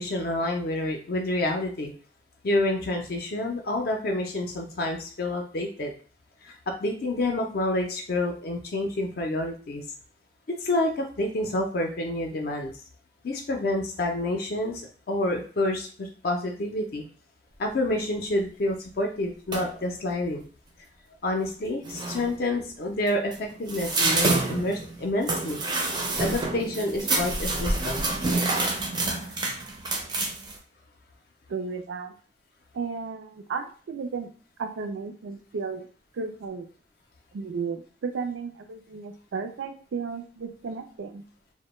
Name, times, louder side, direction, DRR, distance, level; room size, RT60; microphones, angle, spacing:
voice 1, 0.0-1.9 2.4-5.9 6.4-9.8 10.6-12.7 13.2-17.0 17.6-20.4 21.2-25.6 26.2-28.1, left 1 dB, 55° left, 1 dB, 0.4 m, -28 dB
sound 1, 19.5-19.8 21.4-21.5 21.8-22.3 23.1-30.5, right 2 dB, 25° right, 0.4 m, -27 dB
voice 2, 31.5-32.1 32.7-34.3 34.6-35.9 36.1-36.7 37.3-41.2, right 5 dB, 85° right, 7 dB, 0.4 m, -34 dB
2.1 x 2.1 x 3.0 m, 0.40 s
head